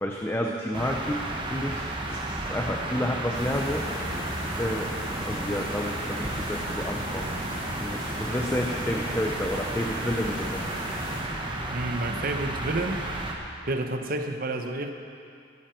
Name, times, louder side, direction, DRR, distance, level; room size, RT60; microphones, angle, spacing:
voice 1, 0.0-4.2 4.5-7.3 7.8-10.6, left 1 dB, 10° left, 1 dB, 0.6 m, -30 dB
sound 1, 0.7-13.3, right 1 dB, 25° right, 1.2 m, -32 dB
sound 2, 3.3-11.2, left 1 dB, 60° left, 3.6 m, -39 dB
voice 2, 11.7-13.0 13.7-14.9, right 2 dB, 45° right, 5 dB, 0.9 m, -29 dB
14.0 x 13.0 x 4.5 m, 2.4 s
head